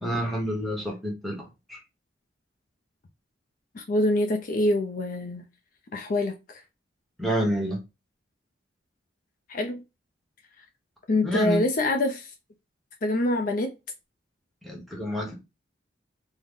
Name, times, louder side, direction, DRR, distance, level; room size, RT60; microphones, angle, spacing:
voice 1, 0.0-1.8 7.2-7.8 11.2-11.6 14.6-15.4, equal, ahead, 0.9 m, -28 dB
voice 2, 3.7-5.5 5.9-6.6 9.5-9.8 11.1-12.3 13.0-13.7, left 1 dB, 45° left, 0.4 m, -25 dB
3.7 x 2.1 x 3.5 m
head